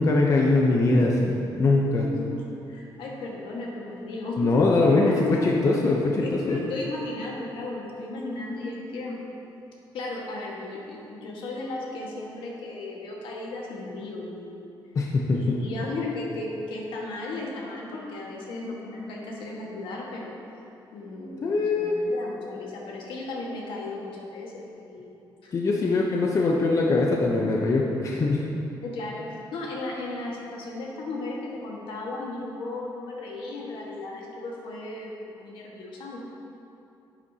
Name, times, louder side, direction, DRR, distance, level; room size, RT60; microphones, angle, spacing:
voice 1, 0.0-2.1 4.4-5.1 5.6-6.6 14.9-15.6 21.4-22.0 25.5-28.4, left 3 dB, 40° left, -1 dB, 0.7 m, -22 dB
voice 2, 2.0-4.5 5.0-5.5 6.2-9.2 9.9-14.7 15.3-20.4 20.9-25.1 25.4-25.9 28.8-29.2 29.5-36.2, left 2 dB, 80° left, -2 dB, 1.5 m, -35 dB
10.0 x 7.9 x 2.8 m, 2.8 s
cardioid pair, 145°, 8 cm